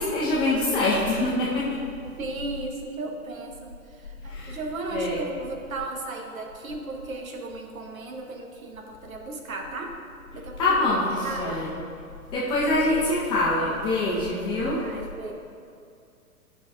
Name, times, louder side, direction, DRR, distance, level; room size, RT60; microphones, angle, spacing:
voice 1, 0.0-1.7 4.2-4.6 4.9-5.2 10.6-11.7 12.3-14.8, left 2 dB, 10° left, -6 dB, 0.5 m, -24 dB
voice 2, 2.2-10.0 10.3-10.8 11.2-11.6 14.6-15.3, right 3 dB, 65° right, 2 dB, 1.1 m, -36 dB
11.5 x 5.6 x 2.4 m, 2.5 s
figure-of-eight pair, 115°, 44 cm